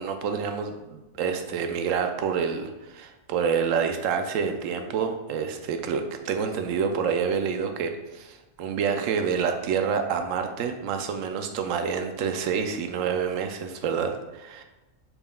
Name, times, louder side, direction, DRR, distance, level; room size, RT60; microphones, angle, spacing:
voice 1, 0.0-14.6, right 6 dB, 85° right, 6 dB, 1.0 m, -28 dB
5.3 x 4.5 x 2.2 m, 1.1 s
omnidirectional pair, 1.3 m